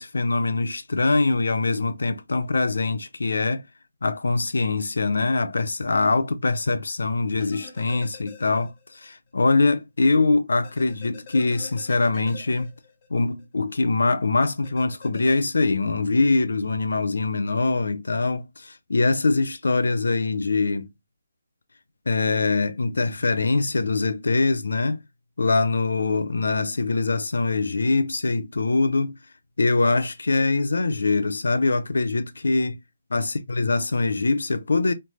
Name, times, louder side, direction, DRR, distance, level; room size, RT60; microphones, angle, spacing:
voice 1, 0.0-3.6 4.0-8.7 9.0-12.7 13.1-20.9 22.1-25.0 25.4-29.2 29.6-32.8 33.1-34.9, left 3 dB, 85° left, 0.5 m, -23 dB
sound 1, 7.4-9.1 9.4-9.5 10.6-13.4 14.6-15.4, left 4 dB, 30° left, 0.9 m, -46 dB
3.2 x 2.0 x 2.9 m
hypercardioid pair, 165°, 0 cm